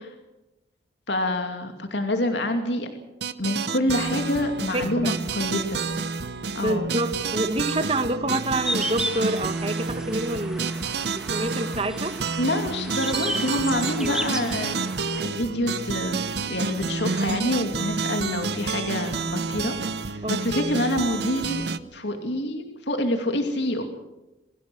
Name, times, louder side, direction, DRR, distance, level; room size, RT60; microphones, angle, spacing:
voice 1, 1.1-2.9 3.4-5.8 6.5-6.9 12.4-14.9 15.2-16.2 16.5-19.7 20.1-21.6 21.9-23.8, left 1 dB, 75° left, 5 dB, 2.4 m, -27 dB
sound 1, 3.2-21.8, right 4 dB, 65° right, 0.9 m, -29 dB
voice 2, 4.7-5.2 6.6-10.8 11.1-12.1 14.0-14.2 20.2-20.6, right 1 dB, 30° right, 9 dB, 1.3 m, -27 dB
sound 2, 8.6-15.2, equal, 5° right, 1.3 m, -34 dB
23.5 x 16.0 x 7.9 m, 0.97 s
head